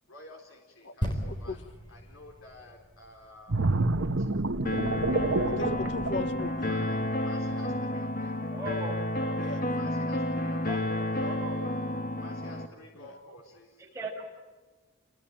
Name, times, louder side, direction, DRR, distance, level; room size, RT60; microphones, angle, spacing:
voice 1, 0.1-3.8 4.1-4.3 6.6-8.5 9.6-10.8 11.1-11.4 12.1-13.9, left 1 dB, 80° left, 1 dB, 3.9 m, -51 dB
sound 1, 1.0-4.6 5.2-5.3, equal, 20° left, 4.2 m, -37 dB
voice 2, 1.2-1.6 5.5-6.7 9.4-9.7 12.9-13.2, left 3 dB, 60° left, 10 dB, 1.4 m, -38 dB
sound 2, 3.5-7.1 7.5-7.7, right 2 dB, 75° right, 1.3 m, -28 dB
sound 3, 4.7-12.7, left 1 dB, 40° left, 1.6 m, -31 dB
voice 3, 8.5-9.3 10.7-11.6 13.9-14.2, right 1 dB, 15° right, -1 dB, 6.4 m, -38 dB
28.5 x 21.5 x 9.0 m, 1.3 s
head